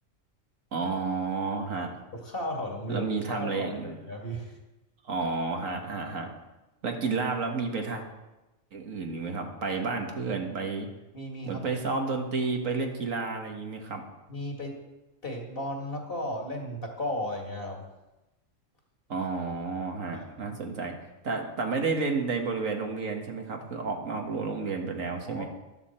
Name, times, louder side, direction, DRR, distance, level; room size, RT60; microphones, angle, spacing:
voice 1, 0.7-1.9 2.9-4.0 5.0-6.3 6.8-8.0 8.7-10.9 11.5-14.0 19.1-20.9 21.2-25.5, right 4 dB, 75° right, 3 dB, 1.9 m, -31 dB
voice 2, 2.1-4.6 11.1-11.6 14.3-14.7 15.2-17.8 20.1-20.5 25.3-25.5, left 1 dB, 45° left, 1 dB, 2.2 m, -35 dB
13.0 x 11.5 x 4.4 m, 1.0 s
omnidirectional pair, 1.4 m